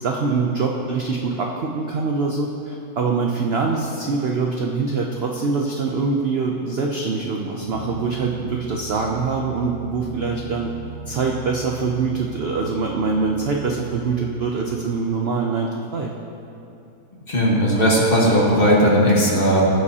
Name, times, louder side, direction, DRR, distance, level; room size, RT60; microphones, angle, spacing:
voice 1, 0.0-10.7 11.1-16.1, right 4 dB, 60° right, 0 dB, 0.7 m, -24 dB
sound 1, 7.6-14.3, right 4 dB, 60° left, 1.7 m, -38 dB
voice 2, 17.3-19.7, equal, 35° left, -4 dB, 1.6 m, -17 dB
15.0 x 7.8 x 2.8 m, 2.7 s
omnidirectional pair, 1.7 m